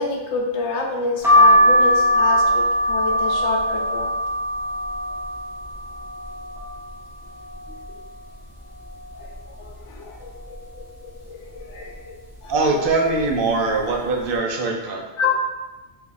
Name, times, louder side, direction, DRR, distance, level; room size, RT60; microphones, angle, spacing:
voice 1, 0.0-4.1 9.2-12.1 12.4-12.5 15.2-15.3, left 4 dB, 85° left, 2 dB, 0.9 m, -28 dB
sound 1, 1.2-6.9 7.4-8.1 8.5-8.6 8.8-9.9 10.4-10.8 11.5-11.9 12.7-12.9 13.2-13.4, equal, 5° right, 0.4 m, -20 dB
voice 2, 12.5-15.0, right 3 dB, 60° right, 1 dB, 0.7 m, -22 dB
2.7 x 2.4 x 3.8 m, 1.2 s
omnidirectional pair, 1.2 m